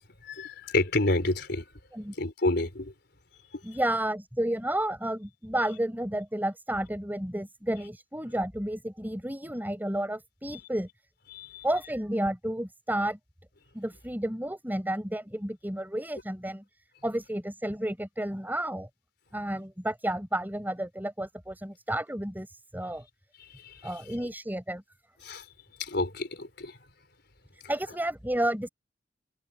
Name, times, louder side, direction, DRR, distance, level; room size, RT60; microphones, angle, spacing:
voice 1, 0.2-1.7 2.2-2.9 11.3-11.6 23.4-23.9 25.2-25.5 25.8-26.8, left 2 dB, 60° left, 4.5 m, -29 dB
voice 2, 3.6-10.9 11.6-13.2 13.7-16.6 17.0-18.9 19.3-23.0 23.8-24.8 27.7-28.7, right 1 dB, 10° right, 5.5 m, -31 dB
head